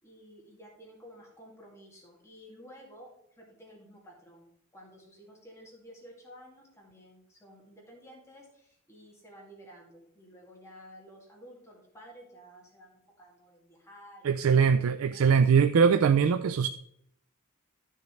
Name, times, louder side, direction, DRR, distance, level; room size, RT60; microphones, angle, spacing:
voice 1, 0.0-4.5 4.7-14.5 15.1-15.5, equal, 15° left, 2.3 m, -52 dB
voice 2, 14.2-16.7, right 6 dB, 70° right, 0.4 m, -22 dB
13.0 x 6.9 x 3.2 m
head